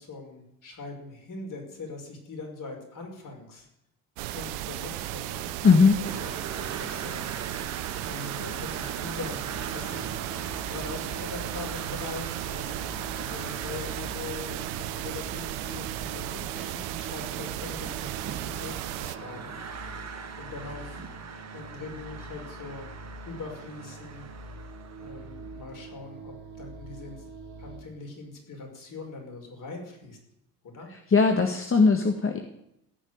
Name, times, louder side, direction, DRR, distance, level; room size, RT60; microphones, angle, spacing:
voice 1, 0.0-3.7 4.3-5.5 5.9-9.4 9.7-10.1 10.6-12.9 13.2-21.0 21.5-22.9 23.3-24.3 25.0-27.2 27.6-30.2 30.6-30.9, left 3 dB, 45° left, 2 dB, 5.7 m, -42 dB
sound 1, 4.2-19.2, right 15 dB, 70° right, 0.9 m, -35 dB
voice 2, 5.6-6.0 30.9-32.4, left 4 dB, 30° left, 5 dB, 1.8 m, -20 dB
sound 2, 6.0-25.6, right 6 dB, 35° right, 2.0 m, -42 dB
sound 3, 9.4-27.8, right 3 dB, 55° right, 4.2 m, -44 dB
16.5 x 6.4 x 9.6 m, 0.81 s
hypercardioid pair, 65°, 44 cm